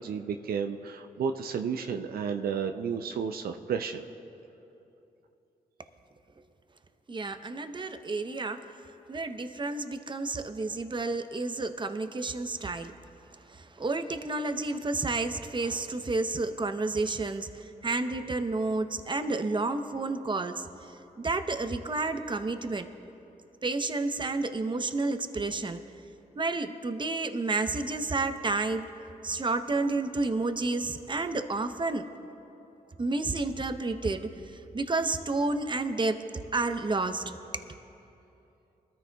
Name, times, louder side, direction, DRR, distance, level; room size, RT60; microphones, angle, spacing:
voice 1, 0.0-4.0, right 6 dB, 75° right, 6 dB, 0.5 m, -32 dB
voice 2, 7.1-8.6 9.1-12.9 13.5-20.7 21.2-22.9 23.6-25.8 26.3-28.9 29.2-32.1 33.0-36.3 36.5-37.4, right 3 dB, 30° right, 9 dB, 0.8 m, -30 dB
21.0 x 13.5 x 2.3 m, 2.9 s
supercardioid pair, 50°, 16 cm